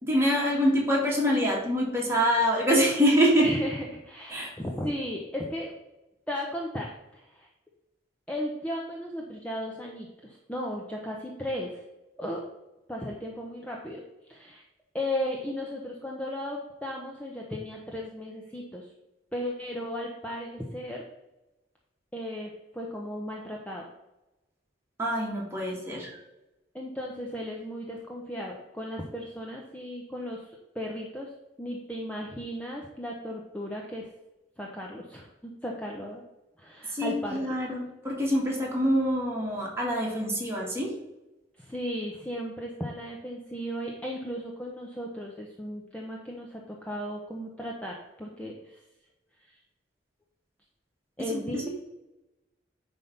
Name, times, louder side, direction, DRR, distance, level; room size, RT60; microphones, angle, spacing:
voice 1, 0.0-3.5 4.3-4.5 25.0-26.1 36.9-40.9 51.2-51.7, equal, 15° right, -3 dB, 2.3 m, -25 dB
voice 2, 3.4-5.7 6.3-7.5 8.3-11.8 12.2-12.4 12.9-14.0 14.3-14.6 14.9-18.9 19.3-21.0 22.1-23.9 26.7-30.4 30.7-31.3 31.6-34.1 34.6-36.2 36.6-37.6 41.6-48.8 49.5-49.6 51.2-51.7, equal, 5° left, -2 dB, 0.9 m, -35 dB
9.8 x 3.6 x 5.6 m, 0.98 s
head